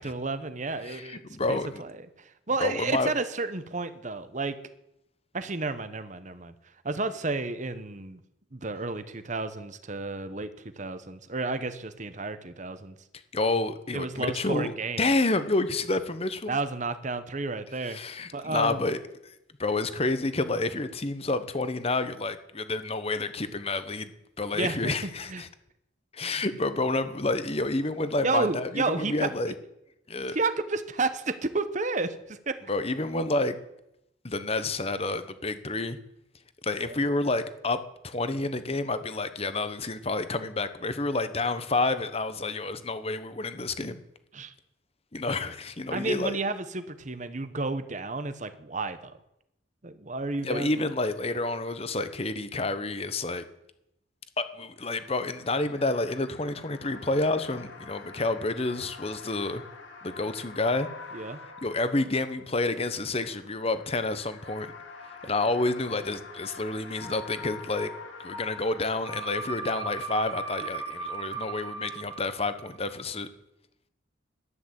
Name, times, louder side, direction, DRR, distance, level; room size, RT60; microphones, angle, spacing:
voice 1, 0.0-1.2 1.8-4.6 5.3-6.5 6.8-8.2 8.5-10.5 10.8-12.9 13.9-15.0 16.5-18.0 18.3-18.8 24.5-25.4 26.2-26.4 28.2-29.3 30.3-32.6 36.8-37.0 44.3-44.5 45.9-49.1 49.8-50.7 61.1-61.4, right 3 dB, 40° right, 11 dB, 1.0 m, -31 dB
voice 2, 0.8-1.8 2.6-3.1 13.3-14.7 15.0-16.6 17.9-19.3 19.6-24.1 24.4-25.5 26.1-29.5 30.1-30.4 32.7-33.5 34.2-36.0 36.6-37.8 38.0-44.0 45.1-46.4 50.4-53.4 54.4-59.6 60.0-60.9 61.6-64.7 65.2-67.9 68.2-73.3, left 2 dB, 30° left, 11 dB, 1.1 m, -29 dB
sound 1, 54.8-62.6 63.1-72.9, right 1 dB, 85° left, 2.5 m, -42 dB
12.5 x 10.0 x 8.2 m, 0.82 s
head